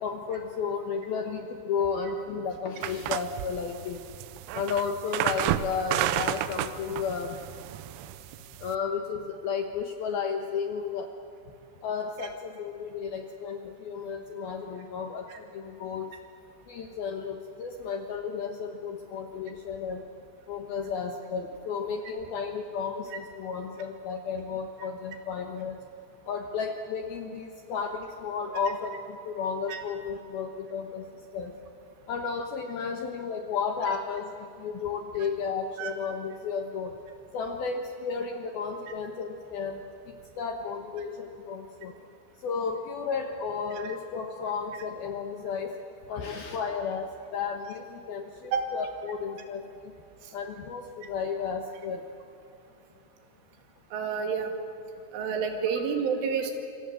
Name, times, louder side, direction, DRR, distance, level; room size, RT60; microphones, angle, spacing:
voice 1, 0.0-4.0 4.5-7.4 8.6-11.1 11.8-15.3 15.5-16.1 16.7-20.0 20.5-25.8 26.3-31.0 31.3-31.5 32.1-36.9 37.3-39.8 40.4-41.9 42.4-45.7 46.1-47.1 47.3-49.9 50.3-52.0, left 5 dB, 70° left, 4 dB, 2.4 m, -33 dB
sound 1, 2.8-8.8, right 13 dB, 85° right, 3.5 m, -31 dB
voice 2, 53.9-54.5 55.1-56.5, right 6 dB, 70° right, 5 dB, 4.7 m, -29 dB
27.5 x 25.0 x 7.8 m, 2.9 s
omnidirectional pair, 5.9 m